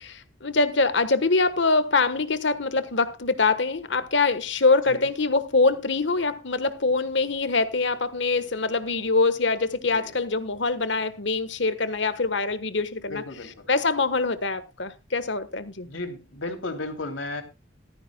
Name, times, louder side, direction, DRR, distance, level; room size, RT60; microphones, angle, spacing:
voice 1, 0.0-13.2 13.7-15.9, left 3 dB, 70° left, 1.3 m, -24 dB
voice 2, 13.1-13.7 15.8-17.4, left 2 dB, 90° left, 3.0 m, -34 dB
15.5 x 13.5 x 2.3 m
head